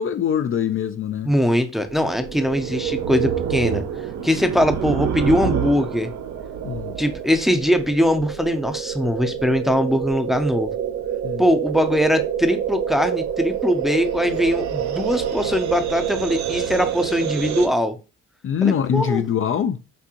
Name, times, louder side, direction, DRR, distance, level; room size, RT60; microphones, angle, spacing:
voice 1, 0.0-1.3 6.6-6.9 11.2-11.4 18.4-19.8, left 8 dB, 45° left, 0.4 m, -23 dB
voice 2, 1.3-3.8 4.2-6.1 7.0-10.7 11.4-18.0 18.6-19.2, equal, ahead, 0.6 m, -21 dB
sound 1, 1.8-17.7, right 9 dB, 65° right, 0.8 m, -27 dB
5.9 x 2.6 x 3.0 m
cardioid pair, 90°, 30 cm